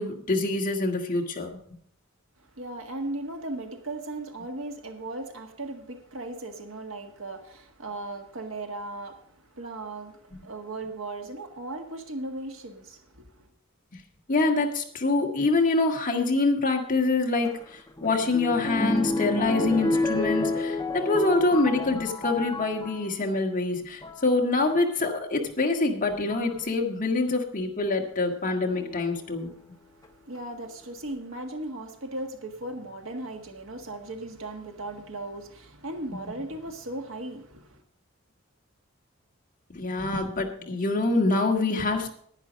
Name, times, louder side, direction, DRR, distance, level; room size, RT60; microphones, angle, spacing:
voice 1, 0.0-1.5 13.9-14.0 14.3-29.5 36.1-36.2 39.7-42.1, left 3 dB, 40° left, 1.7 m, -25 dB
voice 2, 2.4-13.5 29.6-37.8, right 2 dB, 75° right, 1.7 m, -37 dB
sound 1, 17.4-23.1 23.8-24.3 25.5-25.6 26.3-26.6 28.7-29.4 30.0-30.1 30.4-30.5, left 1 dB, 15° left, 1.0 m, -30 dB
10.5 x 10.0 x 5.2 m
head